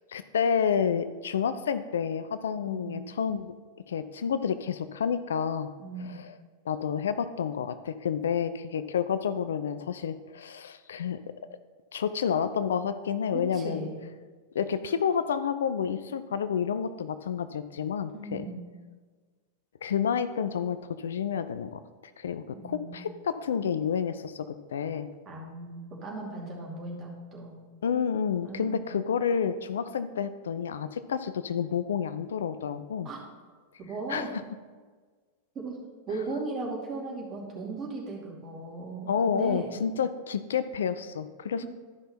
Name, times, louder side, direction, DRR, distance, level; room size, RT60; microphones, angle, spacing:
voice 1, 0.1-3.5 3.9-5.7 6.1-6.4 6.7-11.2 11.9-13.9 14.5-18.4 19.8-21.8 22.2-25.1 27.8-33.1 34.1-34.4 39.1-41.7, left 7 dB, 65° left, 12 dB, 0.4 m, -29 dB
voice 2, 2.7-3.0 5.8-6.2 13.3-14.1 18.1-18.7 22.5-23.0 25.3-27.5 28.4-28.9 33.0-33.2 33.8-34.3 35.5-35.8 36.1-39.8 41.6-41.7, right 3 dB, 25° right, -3 dB, 2.6 m, -37 dB
12.5 x 5.5 x 4.2 m, 1.4 s
figure-of-eight pair, 90°, 0 cm